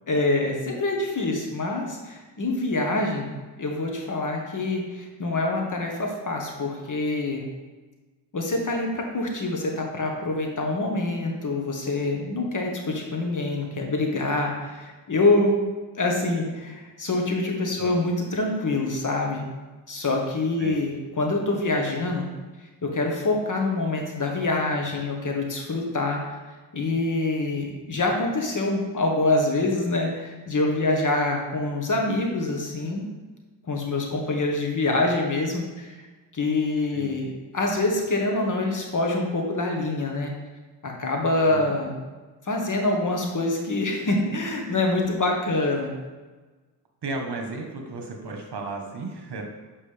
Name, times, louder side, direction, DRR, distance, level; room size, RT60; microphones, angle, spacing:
voice 1, 0.1-7.5 8.3-15.7 16.0-19.5 19.9-22.3 22.8-26.2 26.7-33.0 33.7-36.0 36.3-40.3 40.8-42.0 42.4-45.9, left 2 dB, 45° left, 1 dB, 1.4 m, -25 dB
voice 2, 41.5-41.9 47.0-49.4, right 3 dB, 60° right, 2 dB, 1.3 m, -34 dB
7.4 x 5.3 x 3.4 m, 1.3 s
cardioid pair, 65°, 45 cm